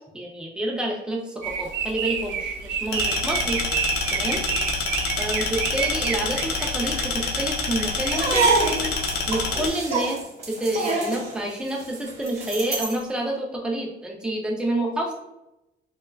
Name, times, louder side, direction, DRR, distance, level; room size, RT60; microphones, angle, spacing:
voice 1, 0.1-3.6 4.1-4.4 5.2-5.4 5.7-8.5 9.3-10.2 10.5-15.1, right 1 dB, 5° right, 0 dB, 0.4 m, -28 dB
sound 1, 1.4-8.9, right 7 dB, 85° right, 0.4 m, -30 dB
sound 2, 2.9-9.7, left 4 dB, 65° left, 0.5 m, -27 dB
sound 3, 8.0-13.0, right 3 dB, 35° right, 0.8 m, -26 dB
4.3 x 2.2 x 2.2 m, 0.93 s
cardioid pair, 180°, 18 cm